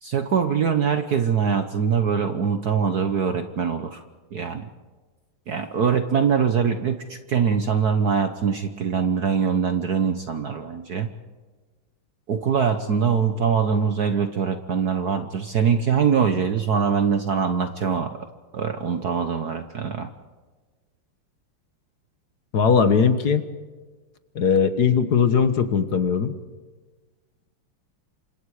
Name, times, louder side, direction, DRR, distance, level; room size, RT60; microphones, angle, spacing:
voice 1, 0.0-4.0 4.3-4.7 5.5-11.1 12.3-18.1 18.5-20.1, right 6 dB, 55° right, 8 dB, 1.4 m, -23 dB
voice 2, 22.5-23.5 24.3-26.3, left 6 dB, 55° left, 10 dB, 1.6 m, -19 dB
29.0 x 26.0 x 4.9 m, 1.3 s
omnidirectional pair, 2.3 m